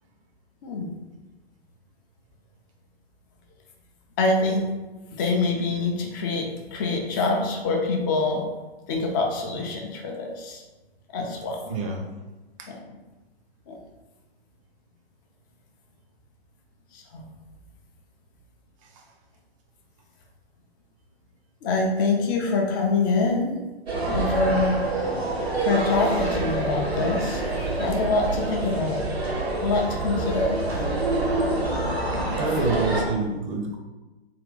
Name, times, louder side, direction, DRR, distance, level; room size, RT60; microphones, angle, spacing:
voice 1, 4.2-4.6 5.1-8.4 8.9-10.6 11.1-11.6 13.7-13.8 16.9-17.2 21.6-23.6 24.1-24.7 25.6-27.4 27.8-29.0 29.6-30.5, left 3 dB, 20° left, 1 dB, 0.4 m, -25 dB
voice 2, 11.7-12.0 12.6-12.7 18.9-19.0 32.4-33.8, right 3 dB, 30° right, 2 dB, 0.6 m, -27 dB
sound 1, 23.9-33.0, right 2 dB, 85° right, 1.0 m, -26 dB
3.6 x 2.2 x 3.7 m, 1.1 s
figure-of-eight pair, 115°, 31 cm